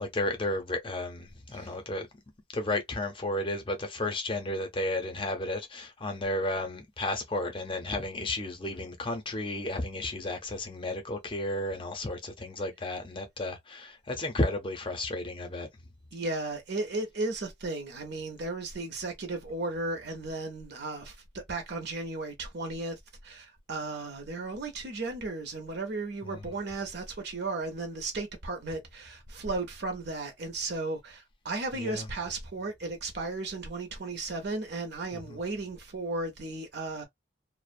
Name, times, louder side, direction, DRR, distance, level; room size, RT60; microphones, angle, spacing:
voice 1, 0.0-2.1 2.5-15.7 26.3-26.4 31.7-32.1 35.1-35.4, left 1 dB, 25° left, 0.6 m, -33 dB
voice 2, 16.1-21.2 21.5-23.0 23.2-37.1, right 2 dB, 55° right, 0.7 m, -35 dB
2.4 x 2.1 x 2.5 m
head